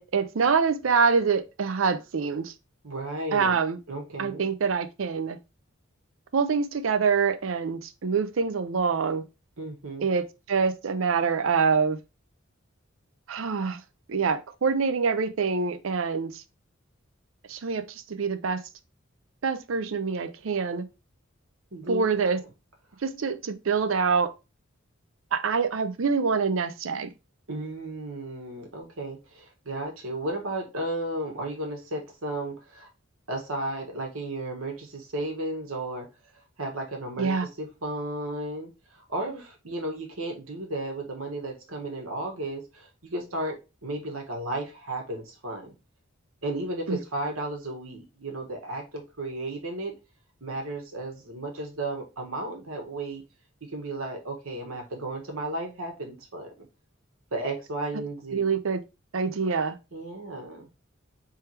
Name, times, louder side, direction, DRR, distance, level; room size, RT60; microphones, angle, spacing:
voice 1, 0.0-2.5 3.3-3.8 4.2-5.4 6.3-9.2 10.0-12.0 13.3-13.8 14.1-16.4 17.5-18.6 19.4-20.9 21.9-22.4 23.0-24.3 25.3-27.1 37.2-37.5 46.9-47.0 58.3-58.8 59.1-59.8, right 5 dB, 70° right, 0.5 m, -25 dB
voice 2, 2.8-3.6 3.9-4.4 9.6-10.1 21.7-22.1 27.5-32.9 33.3-36.1 36.6-45.7 46.4-49.9 50.4-53.2 53.7-56.6 57.3-58.5 59.9-60.7, right 1 dB, 90° right, 1.5 m, -34 dB
4.5 x 3.4 x 3.2 m
head